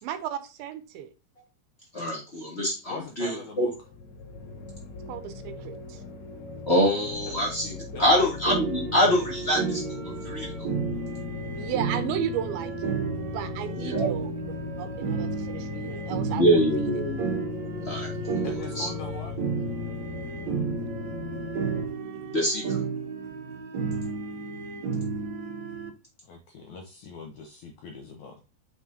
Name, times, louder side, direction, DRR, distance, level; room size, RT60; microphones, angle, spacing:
voice 1, 0.0-1.1 5.1-6.0 11.6-14.3 14.8-16.5, right 9 dB, 80° right, 2.7 m, -34 dB
voice 2, 1.9-3.7 6.7-10.7 13.7-14.1 16.3-17.3 17.8-18.9 22.3-22.8, equal, 20° left, 1.9 m, -25 dB
voice 3, 2.9-3.7 7.9-8.2 18.4-19.3 26.2-28.4, left 4 dB, 70° left, 1.9 m, -41 dB
sound 1, 3.8-21.9, left 5 dB, 90° left, 3.1 m, -38 dB
sound 2, 8.5-25.9, right 5 dB, 60° right, 2.3 m, -32 dB
7.0 x 6.1 x 2.8 m
omnidirectional pair, 4.4 m